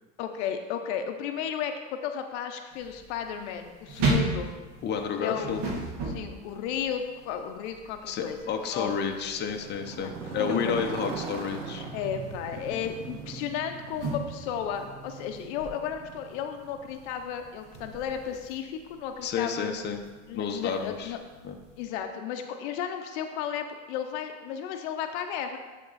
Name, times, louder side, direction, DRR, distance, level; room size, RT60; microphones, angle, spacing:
voice 1, 0.2-4.5 5.2-5.8 6.1-9.2 10.0-10.9 11.9-19.7 20.3-21.2 21.8-25.6, left 8 dB, 70° left, 6 dB, 0.7 m, -34 dB
sound 1, 2.7-21.8, right 2 dB, 55° right, 1.8 m, -38 dB
voice 2, 4.8-5.6 8.1-11.8 19.2-20.0 20.3-21.1 21.4-21.6, left 6 dB, 30° left, 3 dB, 0.8 m, -31 dB
Motorcycle, 9.3-17.4, right 5 dB, 90° right, 1.1 m, -40 dB
11.0 x 3.7 x 4.0 m, 1.3 s
supercardioid pair, 110°, 36 cm